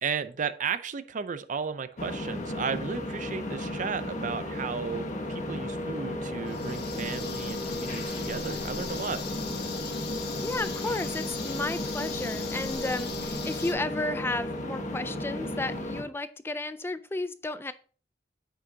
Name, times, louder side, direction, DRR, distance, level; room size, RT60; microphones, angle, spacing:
voice 1, 0.0-9.2, right 6 dB, 45° right, 0.5 m, -34 dB
sound 1, 2.0-16.0, left 1 dB, 45° left, 1.3 m, -34 dB
sound 2, 6.5-13.7, left 6 dB, 65° left, 1.3 m, -40 dB
voice 2, 10.4-17.7, left 2 dB, 15° left, 0.3 m, -33 dB
9.1 x 6.4 x 2.8 m
head